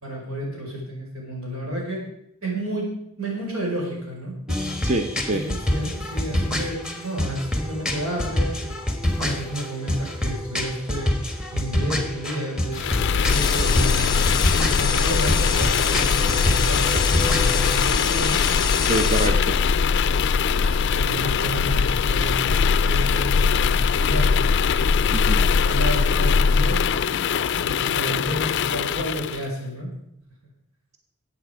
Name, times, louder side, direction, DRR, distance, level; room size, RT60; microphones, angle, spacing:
voice 1, 0.0-2.0 2.4-2.9 3.2-4.4 5.3-8.8 9.2-11.1 11.5-12.8 13.1-14.2 14.8-18.4 20.6-24.8 25.5-26.8 27.6-29.9, right 1 dB, 90° right, -2 dB, 5.1 m, -31 dB
sound 1, 4.5-17.8, left 1 dB, 5° right, 1.4 m, -27 dB
voice 2, 4.8-5.5 18.8-19.6 25.1-25.4, right 2 dB, 30° right, 5 dB, 0.9 m, -25 dB
sound 2, 12.7-29.4, left 5 dB, 55° left, 0.4 m, -21 dB
sound 3, 13.3-19.3, left 6 dB, 20° left, 1.0 m, -27 dB
14.5 x 8.6 x 5.0 m, 0.78 s
head